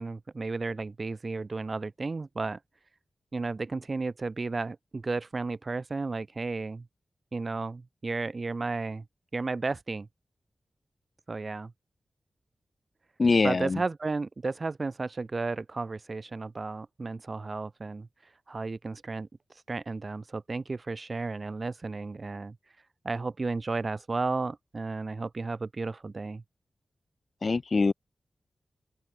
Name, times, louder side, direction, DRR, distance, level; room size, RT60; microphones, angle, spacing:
voice 1, 0.0-2.6 3.3-6.9 7.3-9.0 9.3-10.1 11.3-11.7 13.4-18.1 18.5-19.3 19.7-22.6 23.0-26.4, right 3 dB, 45° right, 1.3 m, -33 dB
voice 2, 13.2-13.8 27.4-27.9, left 4 dB, 50° left, 3.8 m, -23 dB
open air
wide cardioid pair, 80°, 0 cm